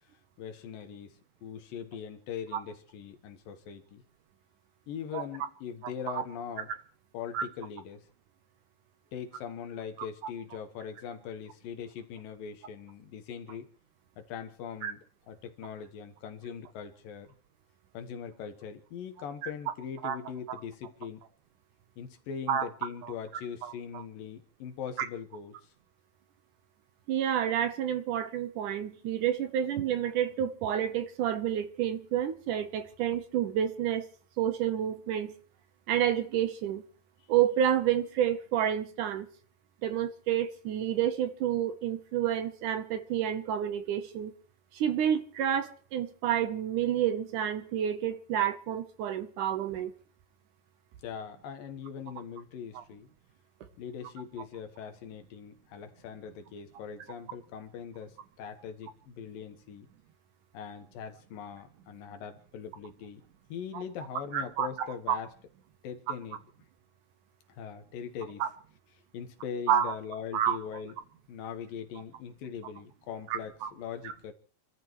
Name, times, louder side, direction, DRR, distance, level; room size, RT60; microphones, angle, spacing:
voice 1, 0.4-4.0 4.9-6.7 7.1-8.1 9.1-13.7 14.2-15.0 15.3-17.3 17.9-21.2 22.0-25.6 51.0-53.1 53.8-59.9 60.5-63.2 63.5-65.3 65.8-66.4 67.5-68.4 69.1-70.9 71.3-74.3, left 7 dB, 75° left, 3.0 m, -41 dB
voice 2, 23.6-24.0 27.1-34.1 34.4-35.3 35.9-36.8 37.3-39.3 39.8-44.3 44.7-49.9 52.8-52.9 63.7-63.8 64.3-64.7 65.1-65.2 68.4-68.5 69.7-69.9 70.3-70.6 73.3-73.7, right 10 dB, 70° right, 2.3 m, -29 dB
28.5 x 13.0 x 3.2 m
omnidirectional pair, 4.1 m